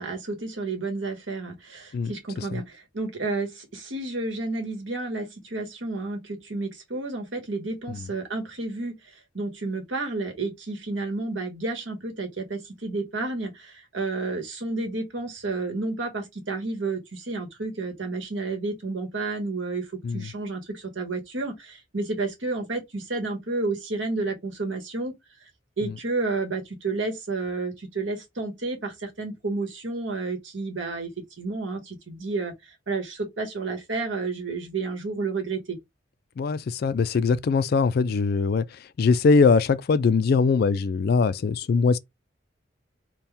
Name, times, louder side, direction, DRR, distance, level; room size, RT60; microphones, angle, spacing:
voice 1, 0.0-9.0 9.3-19.9 20.1-25.1 25.8-31.1 31.4-32.5 32.9-35.8, right 3 dB, 75° right, 1.5 m, -31 dB
voice 2, 1.9-2.6 7.9-8.0 20.0-20.3 36.4-38.6 39.0-42.0, left 4 dB, 50° left, 0.3 m, -22 dB
4.3 x 2.2 x 3.4 m
head